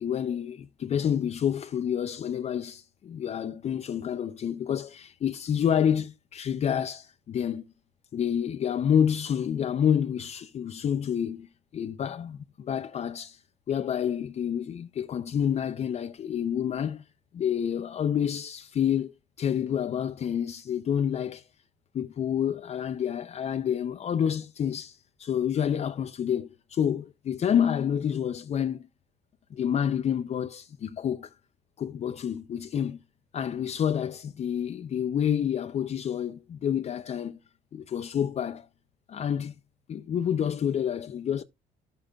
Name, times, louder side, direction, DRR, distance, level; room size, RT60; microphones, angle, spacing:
voice 1, 0.0-7.6 8.1-11.5 11.7-13.4 13.7-17.0 17.3-19.1 19.4-21.4 21.9-28.9 29.5-31.3 31.8-33.0 33.3-37.4 37.7-38.7 39.1-39.5 39.9-41.4, left 8 dB, 40° left, 0.5 m, -28 dB
13.5 x 6.7 x 2.3 m
cardioid pair, 110°, 17 cm